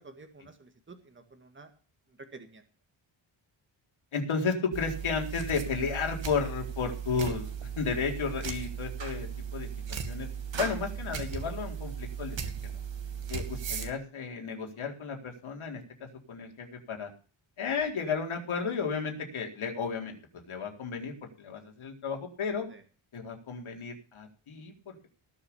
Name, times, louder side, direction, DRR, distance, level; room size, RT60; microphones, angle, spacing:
voice 1, 0.0-1.7 2.2-2.6 22.7-22.8, right 3 dB, 25° right, 6 dB, 2.0 m, -50 dB
voice 2, 4.1-10.3 10.6-12.4 12.6-12.8 13.3-17.1 17.6-21.1 21.4-22.7 23.1-24.9, left 5 dB, 80° left, 2 dB, 4.2 m, -33 dB
sound 1, 4.7-13.9, right 7 dB, 65° right, 2.4 m, -37 dB
19.5 x 6.8 x 7.1 m, 0.37 s
wide cardioid pair, 165°, 48 cm